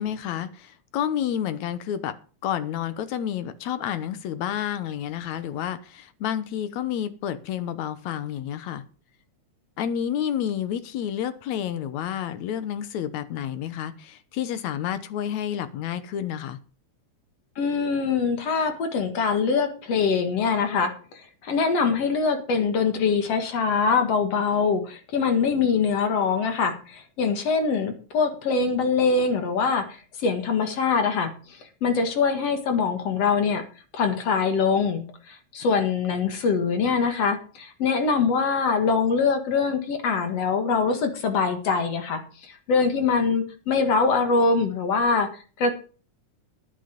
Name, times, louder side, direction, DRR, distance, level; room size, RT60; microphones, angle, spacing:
voice 1, 0.0-2.2 2.4-8.8 9.8-16.6, left 9 dB, 75° left, 2.2 m, -30 dB
voice 2, 17.6-31.3 31.8-33.6 33.9-45.3 45.6-45.7, left 5 dB, 60° left, 2.7 m, -23 dB
12.0 x 9.2 x 5.2 m
omnidirectional pair, 3.4 m